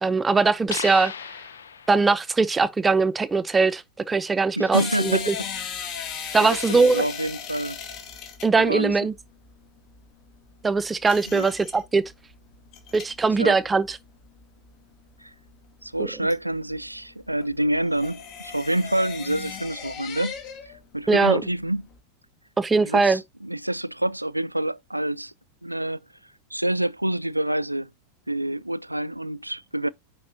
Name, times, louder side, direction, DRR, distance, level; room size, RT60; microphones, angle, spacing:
voice 1, 0.0-1.1 1.9-5.3 6.3-7.1 8.4-9.1 10.6-12.0 12.9-14.0 16.0-16.1 21.1-21.4 22.6-23.2, right 4 dB, 15° right, 0.7 m, -21 dB
sound 1, 0.7-2.2, left 6 dB, 70° left, 0.8 m, -35 dB
voice 2, 4.6-5.3 6.4-7.8 8.6-9.0 11.3-11.5 13.4-13.6 15.2-15.3 15.8-20.3 20.9-21.8 22.8-25.3 25.6-26.0 26.5-27.9 28.3-29.9, right 1 dB, 85° right, 0.3 m, -27 dB
sound 2, 4.7-20.8 21.1-22.0, left 7 dB, 40° left, 2.2 m, -37 dB
9.5 x 4.5 x 2.8 m
figure-of-eight pair, 90°, 0 cm